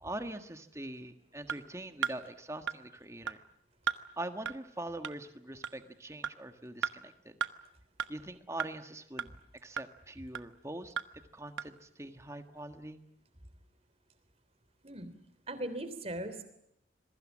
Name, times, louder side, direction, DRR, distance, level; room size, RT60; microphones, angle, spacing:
voice 1, 0.0-3.4 4.2-7.4 8.1-9.3 9.6-10.9 11.3-13.0, right 1 dB, 15° right, 8 dB, 1.6 m, -43 dB
sound 1, 1.5-1.6 2.0-2.2 2.7-2.8 3.3-3.4 3.9-4.0 4.5-4.6 5.0-5.1 5.6-5.7 6.2-6.3 6.8-6.9 7.4-7.5 8.0-8.1 8.6-8.7 9.2-9.3 9.8-9.9 10.3-10.4 11.0-11.1 11.6-11.7, right 7 dB, 85° right, 1.1 m, -33 dB
voice 2, 15.5-16.4, right 1 dB, 30° right, 11 dB, 3.2 m, -38 dB
27.0 x 22.5 x 7.4 m, 0.78 s
head